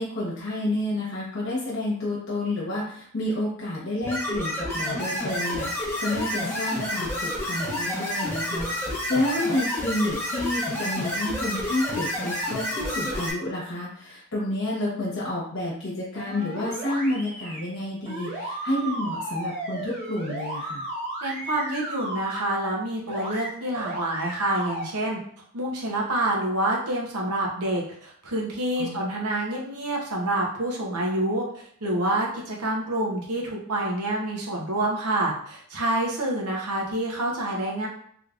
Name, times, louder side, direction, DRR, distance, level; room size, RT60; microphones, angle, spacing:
voice 1, 0.0-20.9 28.8-29.0, left 1 dB, 60° left, -6 dB, 1.0 m, -30 dB
sound 1, 4.0-13.3, left 1 dB, 10° left, 0.8 m, -29 dB
sound 2, 16.1-17.6 18.1-22.4 23.1-23.5 23.7-24.8, right 1 dB, 25° right, 1.1 m, -34 dB
voice 2, 21.2-25.2 25.5-37.9, right 1 dB, 80° right, -2 dB, 0.9 m, -27 dB
3.2 x 3.2 x 2.5 m, 0.63 s
head